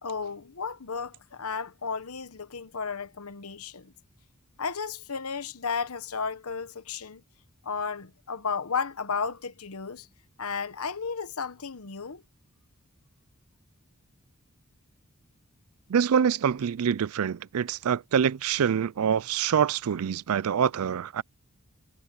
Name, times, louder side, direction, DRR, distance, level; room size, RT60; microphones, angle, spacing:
voice 1, 0.0-3.9 4.6-7.2 7.6-10.1 10.4-12.2, left 5 dB, 90° left, 1.2 m, -33 dB
voice 2, 15.9-21.2, right 7 dB, 85° right, 0.4 m, -25 dB
head